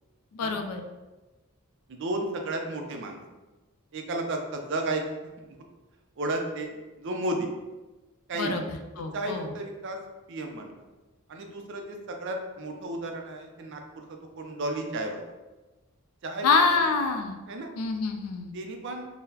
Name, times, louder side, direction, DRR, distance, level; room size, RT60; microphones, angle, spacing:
voice 1, 0.3-0.8 8.3-8.6 9.0-9.5 16.4-17.3 17.8-18.5, left 4 dB, 85° left, 5 dB, 0.4 m, -26 dB
voice 2, 1.9-3.2 3.9-5.0 5.4-5.6 6.2-7.5 8.3-8.6 9.1-10.0 10.3-10.8 11.3-15.3 16.2-16.8 17.5-17.7 18.5-19.1, right 2 dB, 60° right, 3 dB, 0.4 m, -33 dB
3.8 x 2.0 x 2.7 m, 1.1 s
head